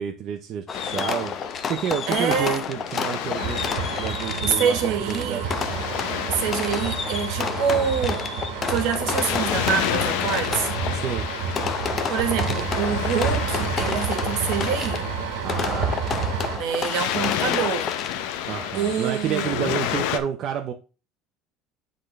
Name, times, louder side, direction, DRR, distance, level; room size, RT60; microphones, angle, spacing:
voice 1, 0.0-1.3 1.7-5.4 10.9-11.3 15.4-16.1 18.5-20.7, right 9 dB, 50° right, 0.7 m, -30 dB
Waves surf, 0.7-20.2, left 11 dB, 80° left, 0.6 m, -32 dB
Fireworks, 0.7-18.4, left 6 dB, 35° left, 0.6 m, -31 dB
voice 2, 2.1-2.6 4.4-5.5 6.3-8.3 8.7-10.7 12.1-15.1 16.5-17.9 18.7-19.7, right 7 dB, 70° right, 1.4 m, -26 dB
sound 1, 3.4-16.6, right 6 dB, 85° right, 1.4 m, -30 dB
7.9 x 3.9 x 3.2 m
cardioid pair, 125°, 0 cm